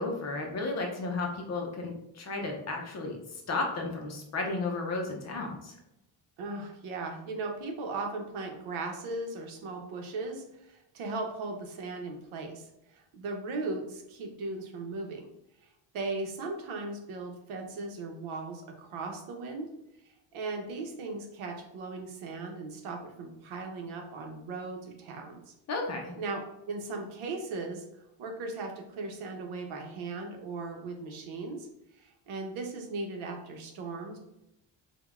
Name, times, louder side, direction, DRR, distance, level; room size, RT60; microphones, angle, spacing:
voice 1, 0.0-5.8 25.7-26.2, left 3 dB, 35° left, 1 dB, 0.5 m, -33 dB
voice 2, 6.4-15.2 15.9-19.7 20.3-25.5 26.2-27.8 28.2-31.7 32.0-34.2, right 3 dB, 80° right, 2 dB, 0.9 m, -37 dB
5.0 x 2.2 x 2.3 m, 0.87 s
cardioid pair, 175°, 48 cm